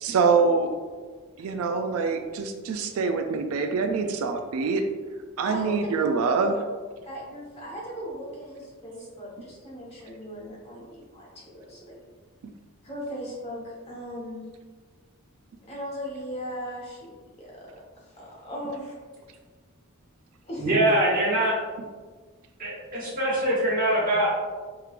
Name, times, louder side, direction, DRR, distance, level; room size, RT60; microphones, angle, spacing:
voice 1, 0.0-0.7 1.4-4.8 5.4-6.5, right 4 dB, 80° right, 6 dB, 0.3 m, -25 dB
voice 2, 6.0-6.6 7.0-11.9 12.8-14.4 15.7-17.1 17.4-17.5 18.0-18.9 20.4-20.9, equal, 30° left, -5 dB, 1.1 m, -37 dB
voice 3, 20.6-21.6 22.6-24.5, right 1 dB, 40° right, -6 dB, 1.2 m, -23 dB
4.7 x 3.2 x 2.4 m, 1.5 s
head